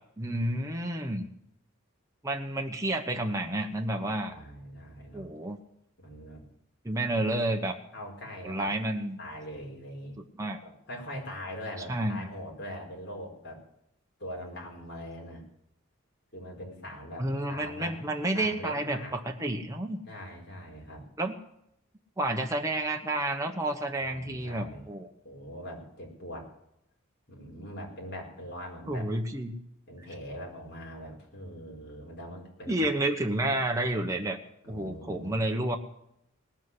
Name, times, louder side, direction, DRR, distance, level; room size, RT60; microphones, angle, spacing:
voice 1, 0.2-1.3 2.2-4.4 5.1-5.6 6.8-7.8 8.4-9.2 10.4-10.6 11.9-12.3 17.2-20.0 21.2-21.3 22.2-25.1 28.9-29.5 32.7-34.4 34.7-35.8, right 1 dB, 15° right, 2 dB, 1.1 m, -30 dB
voice 2, 4.2-5.3 6.0-6.4 7.9-8.7 9.2-10.2 10.6-13.6 14.2-15.4 16.3-18.0 18.3-19.1 20.0-21.0 24.0-24.9 25.2-26.5 27.3-29.1 29.9-32.9 33.2-33.5 34.6-35.4, equal, 50° left, 0 dB, 4.8 m, -42 dB
19.0 x 7.3 x 9.9 m, 0.79 s
head